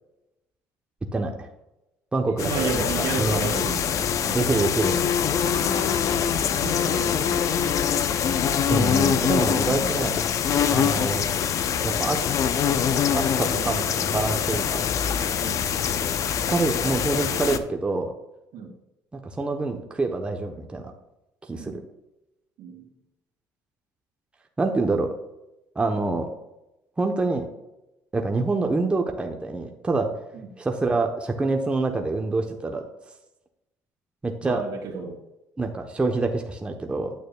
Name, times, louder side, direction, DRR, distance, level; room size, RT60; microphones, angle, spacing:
voice 1, 1.1-1.5 2.1-2.8 3.2-3.5 4.3-5.0 8.7-10.2 10.7-11.3 11.8-12.4 13.1-14.9 16.3-18.1 19.1-20.9 21.5-21.8 24.6-25.1 25.7-26.3 27.0-27.4 28.1-30.1 30.6-32.8 34.2-34.6 35.6-37.1, right 3 dB, 15° right, 3 dB, 0.9 m, -26 dB
voice 2, 2.3-4.4 5.6-5.9 6.3-7.5 9.6-9.9 10.8-11.0 13.6-13.8 15.4-15.7 18.5-18.8 21.6-21.8 22.6-22.9 34.4-35.2, right 5 dB, 75° right, 2 dB, 2.0 m, -33 dB
sound 1, 2.4-17.6, left 8 dB, 55° left, 0.6 m, -24 dB
9.3 x 8.5 x 2.3 m, 0.94 s
cardioid pair, 105°, 7 cm